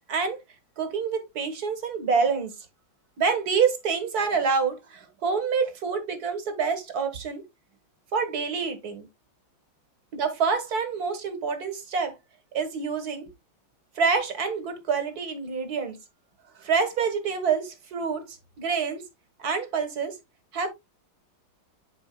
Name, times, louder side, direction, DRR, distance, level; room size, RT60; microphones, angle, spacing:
voice 1, 0.8-2.5 3.2-7.4 8.1-9.1 10.1-12.1 12.5-13.3 14.0-16.0 16.6-19.0 19.4-20.2 20.5-20.7, right 5 dB, 50° right, 1.7 m, -27 dB
11.5 x 4.7 x 2.2 m
omnidirectional pair, 2.3 m